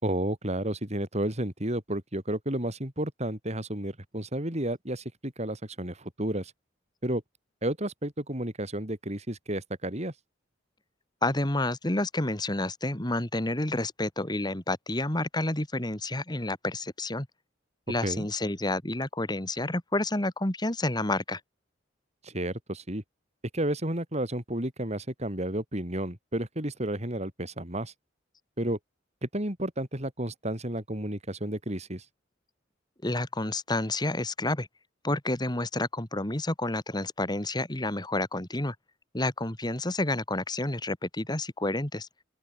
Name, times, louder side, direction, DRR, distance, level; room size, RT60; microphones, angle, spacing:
voice 1, 0.0-6.5 7.0-7.2 7.6-10.1 18.0-18.3 22.2-23.0 23.5-27.9 28.6-28.8 29.2-32.1, right 1 dB, 35° right, 5.7 m, -32 dB
voice 2, 11.2-17.3 17.9-21.4 33.0-34.7 35.0-38.7 39.1-42.1, left 2 dB, 25° left, 2.3 m, -29 dB
open air
head